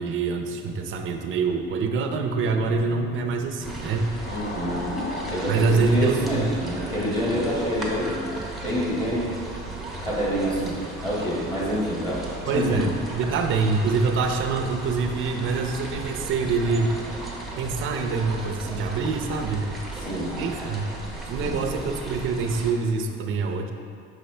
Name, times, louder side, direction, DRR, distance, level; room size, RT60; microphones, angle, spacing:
voice 1, 0.0-4.1 5.5-6.5 12.5-17.0 17.6-19.7 20.4-20.9 21.3-23.7, right 4 dB, 45° right, 4 dB, 0.6 m, -25 dB
sound 1, 0.7-6.1, left 2 dB, 35° left, 0.6 m, -40 dB
sound 2, 3.6-22.7, right 2 dB, ahead, 0.8 m, -36 dB
voice 2, 4.3-8.2 8.6-9.4 10.0-12.8 20.0-20.4, equal, 15° left, -7 dB, 1.5 m, -27 dB
6.3 x 5.4 x 3.3 m, 2.4 s
cardioid pair, 145°, 29 cm